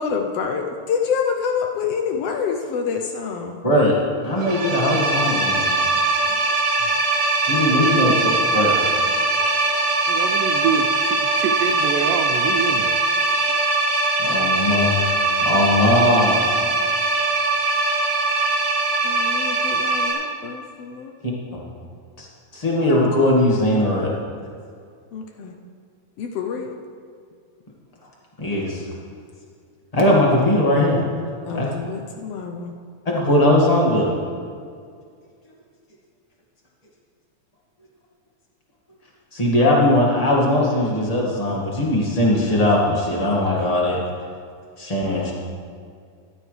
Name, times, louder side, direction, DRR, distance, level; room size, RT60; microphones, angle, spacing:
voice 1, 0.0-3.6 7.8-8.2 19.0-21.1 25.1-25.5 26.2-26.8 31.4-32.7, left 6 dB, 75° left, 3 dB, 1.4 m, -27 dB
voice 2, 4.2-5.6 7.5-8.9 14.2-15.2 15.4-16.6 21.5-21.6 22.2-22.3 22.5-24.1 28.4-28.8 29.9-31.0 31.5-31.7 33.0-34.1 39.3-44.0 44.8-45.3, left 1 dB, 15° left, -3 dB, 1.3 m, -19 dB
sound 1, 4.4-20.1, right 3 dB, 50° right, 2.9 m, -21 dB
voice 3, 10.1-13.0, right 7 dB, 85° right, 5 dB, 2.2 m, -26 dB
14.0 x 11.5 x 3.3 m, 2.2 s
omnidirectional pair, 3.6 m